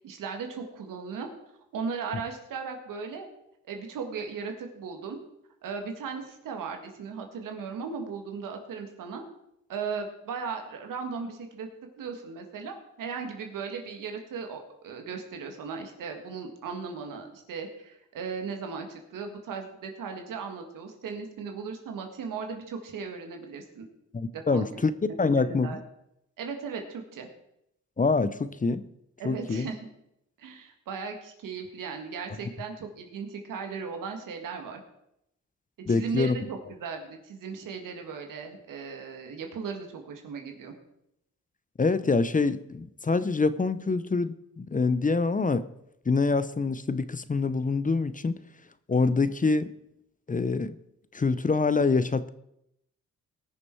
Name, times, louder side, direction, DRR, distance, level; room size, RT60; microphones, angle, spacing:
voice 1, 0.0-1.3 1.7-3.3 3.6-5.2 5.6-9.2 9.7-11.7 12.0-23.9 24.3-24.7 25.4-25.8 26.4-27.3 29.2-29.8 30.4-34.8 35.9-40.7, right 5 dB, 90° right, 4 dB, 1.9 m, -37 dB
voice 2, 24.1-24.9 25.2-25.8 28.0-28.9 29.2-29.7 35.9-36.4 41.8-45.7 46.1-48.4 48.9-49.7 50.3-50.8 51.1-52.3, left 4 dB, 25° left, 14 dB, 0.7 m, -25 dB
19.5 x 6.6 x 4.6 m, 0.80 s
cardioid pair, 75°, 31 cm